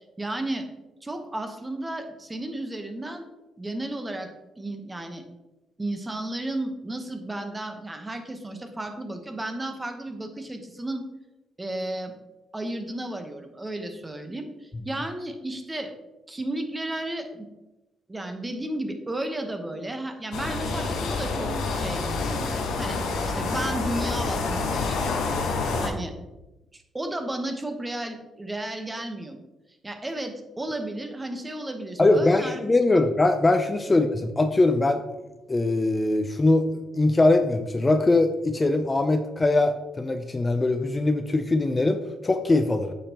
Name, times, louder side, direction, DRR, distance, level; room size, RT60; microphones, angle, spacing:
voice 1, 0.2-0.7 1.0-3.2 3.6-4.3 4.6-5.2 5.8-11.0 11.6-12.1 12.5-15.9 16.3-17.5 18.1-23.0 23.2-25.2 25.8-26.1 26.7-29.4 29.8-32.6 33.9-34.0, right 1 dB, 15° right, 6 dB, 1.0 m, -33 dB
sound 1, 20.3-25.9, left 3 dB, 80° left, 1.1 m, -28 dB
voice 2, 32.0-35.0 35.5-36.7 36.9-42.9, left 2 dB, 20° left, 7 dB, 0.5 m, -22 dB
8.5 x 5.5 x 2.9 m, 1.0 s
cardioid pair, 90°, 0 cm